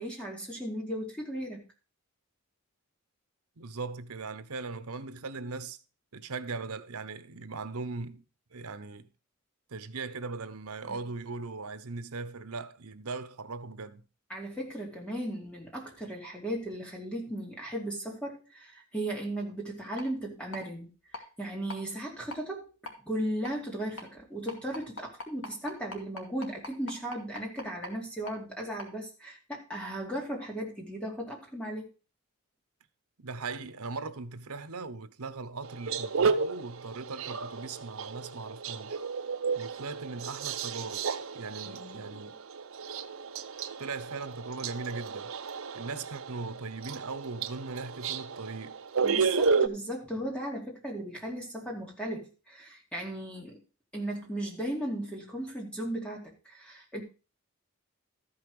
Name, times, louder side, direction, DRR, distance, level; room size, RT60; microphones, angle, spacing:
voice 1, 0.0-1.6 10.9-11.0 14.3-20.9 21.1-22.7 23.1-31.9 41.7-42.2 49.0-53.6 53.9-57.0, right 1 dB, 5° left, 2.5 m, -36 dB
voice 2, 3.6-5.8 6.1-8.2 8.5-9.1 9.7-14.0 33.2-39.0 39.6-41.1 41.3-42.3 43.8-45.3 45.7-48.8, right 4 dB, 90° right, 0.9 m, -39 dB
sound 1, 20.0-20.1 20.5-20.6 21.1-21.2 21.7-21.8 22.3-22.4 22.9-23.0 23.4-23.5 24.0-24.1 24.5-27.9 28.3-28.4 28.8-28.9, left 2 dB, 65° left, 2.4 m, -40 dB
sound 2, 35.6-49.7, right 5 dB, 70° right, 0.7 m, -32 dB
13.5 x 5.7 x 4.7 m
head